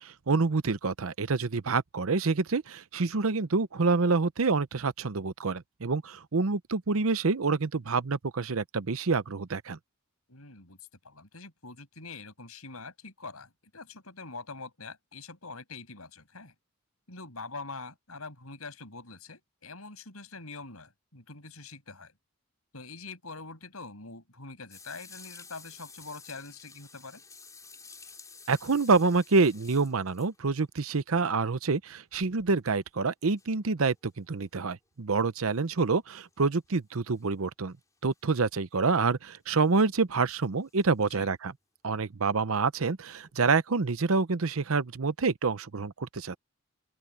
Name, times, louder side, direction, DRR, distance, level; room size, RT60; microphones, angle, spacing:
voice 1, 0.0-9.8 28.5-37.7 38.0-41.5 41.8-46.4, right 4 dB, 70° right, 0.8 m, -27 dB
voice 2, 10.3-10.8 11.0-16.5 17.1-22.1 22.7-27.2 41.1-41.3, left 3 dB, 80° left, 7.0 m, -44 dB
sound 1, 24.7-30.6 32.1-32.8 33.4-33.5 34.7-34.8 36.1-36.7 37.1-37.3 38.1-38.2 39.5-39.8 40.7-40.9 43.2-43.3, left 4 dB, 15° left, 3.9 m, -51 dB
open air
head